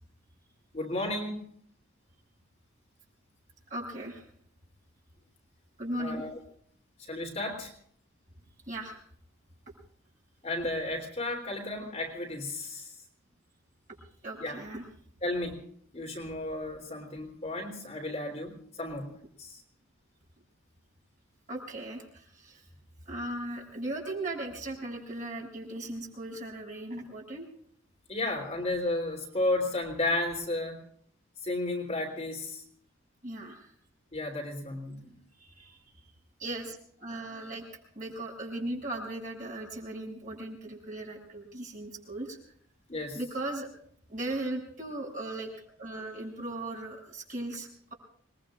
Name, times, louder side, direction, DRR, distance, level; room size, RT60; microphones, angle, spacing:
voice 1, 0.7-1.4 6.0-6.4 7.0-7.7 10.4-12.9 14.4-14.6 15.2-15.6 15.9-19.6 28.1-30.8 31.4-32.6 34.1-35.1 42.9-43.2, left 2 dB, 30° left, 0 dB, 3.3 m, -33 dB
voice 2, 3.7-4.2 5.8-6.2 8.7-9.0 14.2-14.8 21.5-22.6 23.0-27.4 33.2-33.7 35.4-35.8 36.4-42.4 43.1-43.7 44.1-47.9, right 1 dB, 40° right, 0 dB, 6.6 m, -38 dB
27.0 x 21.0 x 2.5 m, 0.62 s
head